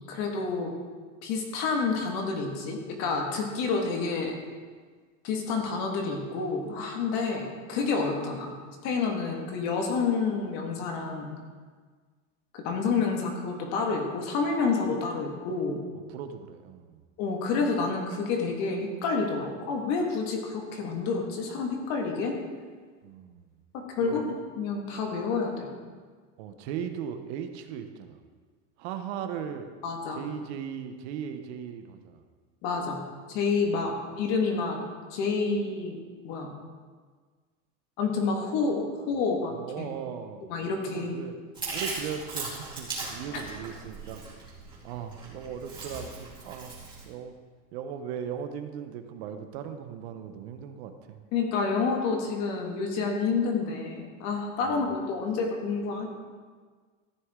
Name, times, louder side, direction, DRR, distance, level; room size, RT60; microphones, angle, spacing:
voice 1, 0.1-0.7 1.2-4.4 5.2-8.5 8.8-11.3 12.5-15.8 17.2-22.4 23.9-24.2 24.6-25.7 29.8-30.2 32.6-33.0 33.3-34.8 35.1-36.5 38.0-39.9 40.5-41.1 43.3-43.4 51.3-56.1, left 4 dB, 45° left, 2 dB, 1.9 m, -29 dB
voice 2, 16.1-17.0 23.0-23.5 24.0-24.3 26.4-28.2 28.8-29.7 30.1-32.2 39.5-40.5 40.9-41.4 41.7-44.2 44.8-46.7 47.0-47.3 47.7-51.2 54.6-54.9, right 8 dB, 55° right, 7 dB, 1.0 m, -38 dB
Chewing mastication, 41.5-47.0, right 3 dB, 15° right, 2.8 m, -38 dB
14.5 x 9.6 x 3.7 m, 1.5 s
supercardioid pair, 165°, 37 cm